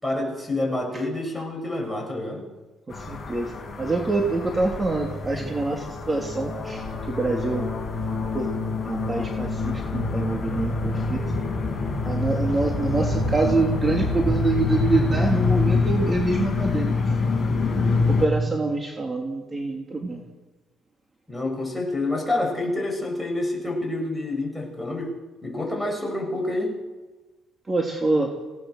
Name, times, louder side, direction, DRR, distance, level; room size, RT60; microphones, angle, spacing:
voice 1, 0.0-2.5 5.3-5.5 21.3-26.8, left 2 dB, 5° left, 0 dB, 7.6 m, -28 dB
sound 1, 2.9-18.3, left 3 dB, 30° left, 5.7 m, -26 dB
voice 2, 2.9-7.7 8.3-8.5 8.9-11.2 12.0-16.9 17.5-20.2 27.7-28.3, right 3 dB, 25° right, 1 dB, 3.1 m, -26 dB
25.5 x 18.0 x 6.6 m, 1.2 s
cardioid pair, 100°, 0 cm